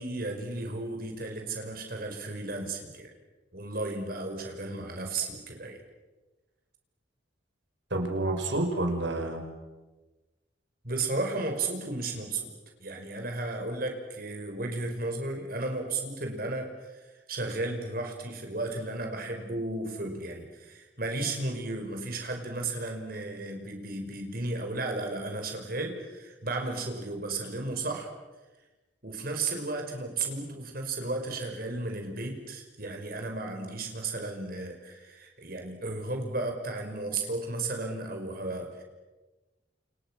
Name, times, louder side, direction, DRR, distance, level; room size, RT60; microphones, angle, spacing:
voice 1, 0.0-3.1 3.5-5.8 10.8-12.5 12.8-28.1 29.0-38.8, right 2 dB, 50° right, 3 dB, 5.4 m, -34 dB
voice 2, 7.9-9.4, right 2 dB, 70° right, 4 dB, 5.4 m, -29 dB
29.5 x 29.0 x 6.3 m, 1.2 s
head